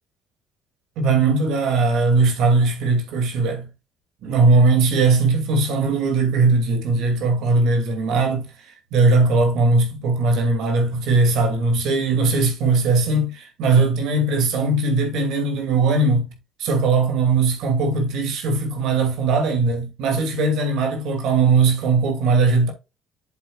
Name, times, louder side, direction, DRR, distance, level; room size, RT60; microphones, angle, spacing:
voice 1, 1.0-3.7 4.2-16.3 16.6-22.7, right 3 dB, 70° right, 2.5 m, -19 dB
8.1 x 7.3 x 2.4 m
cardioid pair, 160°, 0 cm